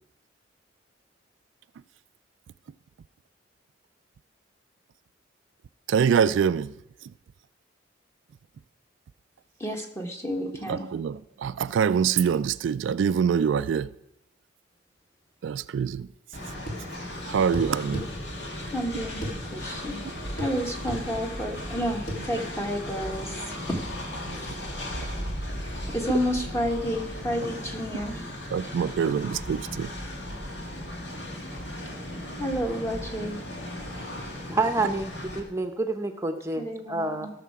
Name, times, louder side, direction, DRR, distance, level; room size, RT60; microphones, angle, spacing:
voice 1, 5.9-6.7 10.7-13.9 15.4-16.1 17.3-18.1 25.0-25.1 28.5-29.9, right 7 dB, 80° right, 0.3 m, -25 dB
voice 2, 9.6-10.8 18.7-20.0 20.3-23.8 25.9-28.2 32.4-33.4 36.6-37.3, equal, 15° left, 1.3 m, -30 dB
Train, 16.3-35.4, left 1 dB, 65° left, 2.0 m, -36 dB
sound 1, 16.7-16.9 17.5-18.1 19.2-19.4 20.4-20.6 20.9-21.0 22.1-22.2, equal, 50° left, 2.1 m, -32 dB
voice 3, 34.5-37.3, right 2 dB, 15° right, 0.8 m, -28 dB
16.0 x 6.6 x 4.7 m
head